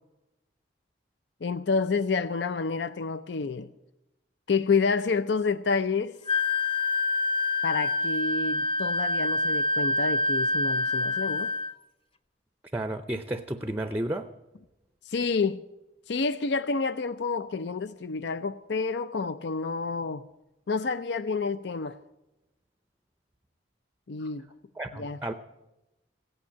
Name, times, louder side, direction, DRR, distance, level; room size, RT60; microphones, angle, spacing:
voice 1, 1.4-3.7 4.5-6.2 7.6-11.5 15.1-15.6 16.1-20.3 20.7-22.0 24.1-24.5 25.0-25.2, left 4 dB, 65° left, 0.5 m, -29 dB
Wind instrument woodwind instrument, 6.3-11.7, left 2 dB, 30° left, 0.7 m, -26 dB
voice 2, 12.7-14.3 24.8-25.3, right 1 dB, 10° right, 0.5 m, -32 dB
17.0 x 8.9 x 9.6 m
head